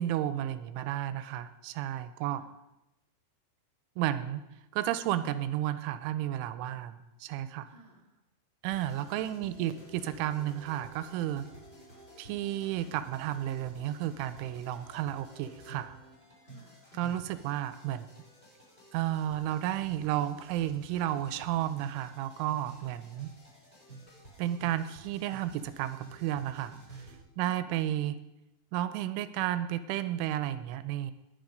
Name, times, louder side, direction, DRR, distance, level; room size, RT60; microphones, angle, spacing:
voice 1, 0.0-2.4 4.0-4.4 4.7-7.7 8.6-11.5 12.2-16.0 16.9-18.1 18.9-23.3 24.4-26.7 27.4-28.2 28.7-31.1, right 12 dB, 85° right, 12 dB, 3.1 m, -32 dB
voice 2, 2.2-2.5 7.6-8.2 16.4-16.9 27.4-27.7, equal, 45° left, -2 dB, 0.7 m, -57 dB
sound 1, 8.7-27.2, right 2 dB, 10° left, 5.6 m, -52 dB
20.0 x 10.5 x 5.2 m, 0.94 s
omnidirectional pair, 5.7 m